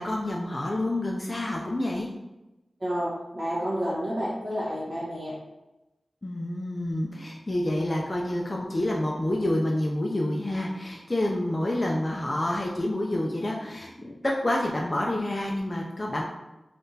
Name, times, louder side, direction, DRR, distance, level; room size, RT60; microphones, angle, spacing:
voice 1, 0.0-2.1 6.2-16.2, left 1 dB, 30° left, -2 dB, 0.3 m, -28 dB
voice 2, 2.8-5.3, equal, 50° right, -10 dB, 1.0 m, -30 dB
3.5 x 2.4 x 2.7 m, 0.99 s
wide cardioid pair, 95°, 0 cm